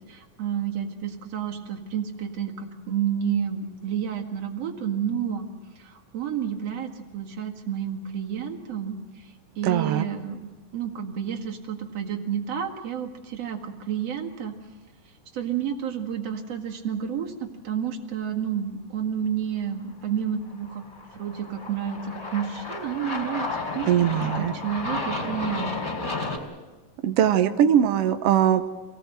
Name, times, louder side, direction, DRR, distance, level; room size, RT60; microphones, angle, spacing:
voice 1, 0.1-5.5 5.8-14.6 15.3-20.8 21.1-23.5 23.7-23.9 24.2-25.7, right 8 dB, 55° right, 2 dB, 2.8 m, -30 dB
voice 2, 9.6-10.0 23.9-24.5 27.0-28.7, right 10 dB, 75° right, 9 dB, 1.4 m, -21 dB
Aircraft, 20.6-26.4, left 3 dB, 15° left, 4.2 m, -32 dB
26.5 x 19.0 x 7.8 m, 1.2 s
omnidirectional pair, 3.7 m